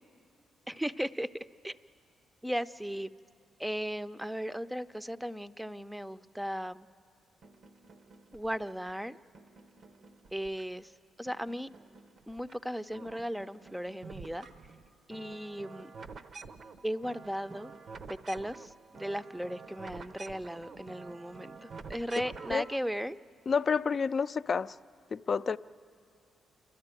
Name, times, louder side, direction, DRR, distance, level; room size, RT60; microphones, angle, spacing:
voice 1, 0.7-1.8 2.4-3.1 3.6-6.9 8.3-9.2 10.3-10.9 11.2-11.7 12.3-14.5 15.1-15.9 16.8-17.7 18.1-23.2, equal, 5° right, 0.6 m, -36 dB
sound 1, 7.4-8.9 9.3-10.9 11.3-12.6 12.8-22.8, right 4 dB, 60° right, 0.7 m, -49 dB
voice 2, 23.5-24.8 25.1-25.6, left 5 dB, 50° left, 0.4 m, -29 dB
29.0 x 12.5 x 9.0 m
supercardioid pair, 60°, 0 cm